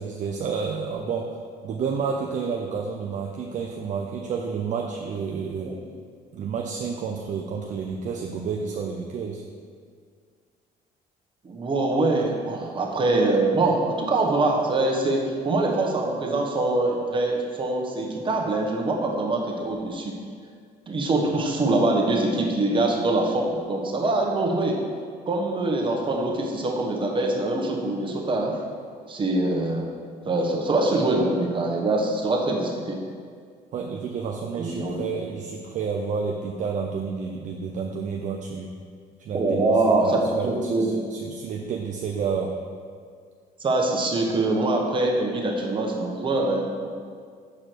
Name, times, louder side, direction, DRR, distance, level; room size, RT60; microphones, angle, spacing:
voice 1, 0.0-1.4 1.6-5.8 6.3-9.4 33.7-38.8 39.2-40.7 41.1-42.6, right 5 dB, 45° right, 2 dB, 0.5 m, -30 dB
voice 2, 11.4-20.2 20.9-24.8 25.3-28.6 29.1-29.9 30.2-33.0 34.6-35.0 39.3-41.0 43.6-46.9, right 2 dB, 30° right, 0 dB, 1.1 m, -24 dB
6.2 x 4.8 x 4.5 m, 2.1 s
cardioid pair, 110°, 17 cm